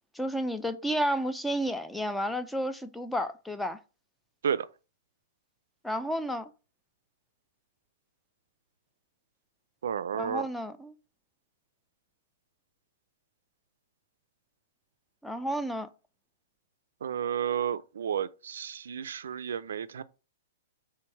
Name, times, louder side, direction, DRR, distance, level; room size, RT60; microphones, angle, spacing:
voice 1, 0.2-3.8 5.8-6.5 10.1-10.9 15.2-15.9, equal, 5° left, 0.3 m, -31 dB
voice 2, 9.8-10.5 17.0-20.0, right 8 dB, 80° right, 0.3 m, -32 dB
3.4 x 3.2 x 4.5 m
hypercardioid pair, 155°, 0 cm